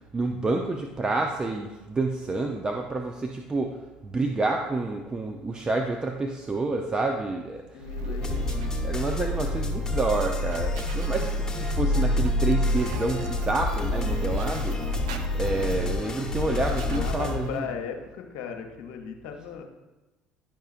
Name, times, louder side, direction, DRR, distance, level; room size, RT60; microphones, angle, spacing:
voice 1, 0.1-8.2 8.8-15.0 15.3-17.7, right 3 dB, 25° right, 3 dB, 0.6 m, -29 dB
voice 2, 7.7-8.7 16.8-19.6, left 7 dB, 70° left, 4 dB, 0.8 m, -37 dB
sound 1, 7.8-17.7, left 1 dB, 85° right, 0.4 m, -29 dB
sound 2, 8.2-17.4, left 3 dB, 20° left, 1.1 m, -34 dB
10.5 x 5.5 x 2.4 m, 1.1 s
hypercardioid pair, 65°, 3 cm